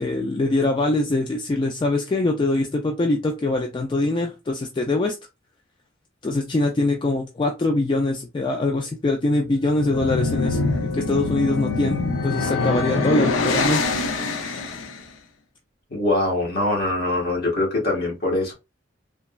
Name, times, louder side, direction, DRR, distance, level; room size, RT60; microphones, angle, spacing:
voice 1, 0.0-5.2 6.2-13.8, left 2 dB, 25° left, 0.3 m, -23 dB
sound 1, 9.6-15.0, left 3 dB, 90° left, 0.5 m, -24 dB
voice 2, 15.9-18.5, left 2 dB, 55° left, 1.2 m, -23 dB
3.4 x 2.0 x 2.2 m
head